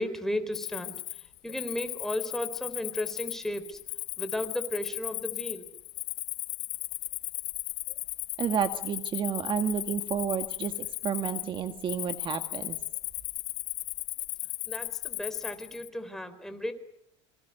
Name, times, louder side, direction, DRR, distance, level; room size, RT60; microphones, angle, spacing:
voice 1, 0.0-3.8 4.2-5.7 14.7-16.7, left 1 dB, 5° left, 8 dB, 4.1 m, -34 dB
Cricket, 0.5-15.9, left 21 dB, 70° left, 2.1 m, -36 dB
voice 2, 8.4-12.8, right 8 dB, 35° right, 8 dB, 1.9 m, -31 dB
28.5 x 25.5 x 6.8 m, 0.77 s
supercardioid pair, 120°, 14 cm